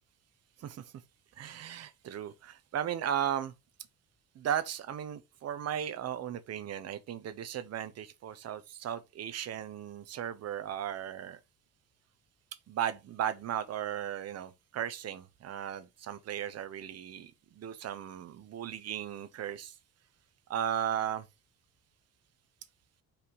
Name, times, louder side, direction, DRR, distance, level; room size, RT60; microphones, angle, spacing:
voice 1, 1.4-3.5 4.3-11.4 12.7-17.3 17.6-19.7 20.5-21.2, right 9 dB, 50° right, 1.1 m, -36 dB
5.5 x 5.2 x 5.5 m
cardioid pair, 145°, 34 cm